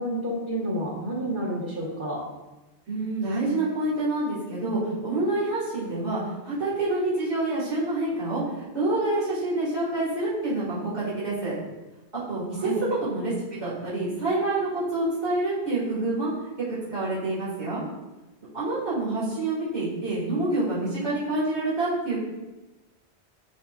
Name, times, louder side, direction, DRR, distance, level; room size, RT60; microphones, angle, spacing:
voice 1, 0.0-2.2 12.5-12.8, right 1 dB, 50° right, -5 dB, 1.4 m, -29 dB
voice 2, 2.9-6.2 6.4-11.6 12.3-12.7 13.0-16.3 16.9-17.8 18.5-22.2, right 2 dB, 85° right, -10 dB, 2.5 m, -27 dB
9.7 x 4.3 x 2.4 m, 1.1 s
omnidirectional pair, 1.1 m